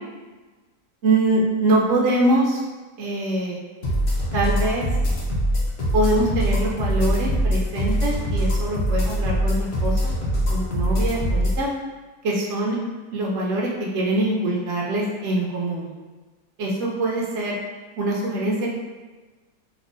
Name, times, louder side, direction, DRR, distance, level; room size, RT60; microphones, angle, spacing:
voice 1, 1.0-2.6 3.0-3.6 4.3-4.9 5.9-10.1 10.5-11.7 12.2-12.8 13.1-15.9 16.6-17.6 18.0-18.7, right 1 dB, 75° right, -3 dB, 0.6 m, -23 dB
sound 1, 3.8-11.6, equal, 65° left, 0.5 m, -23 dB
4.3 x 2.0 x 2.5 m, 1.3 s
omnidirectional pair, 1.8 m